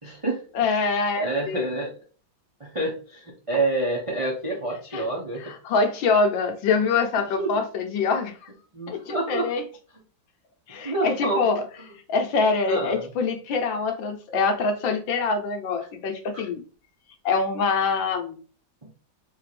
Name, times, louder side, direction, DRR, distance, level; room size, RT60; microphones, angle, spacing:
voice 1, 0.0-0.4 0.8-0.9 1.2-1.9 2.6-5.5 7.4-7.5 8.7-9.5 10.8-11.5 12.7-13.1 16.3-16.5 18.8-18.9, right 2 dB, 40° right, 0.4 m, -28 dB
voice 2, 0.5-1.7 4.9-5.0 5.4-8.5 8.9-9.6 10.7-11.6 12.1-16.6 17.2-18.4, left 4 dB, 75° left, 1.5 m, -24 dB
4.0 x 3.3 x 3.2 m
omnidirectional pair, 2.1 m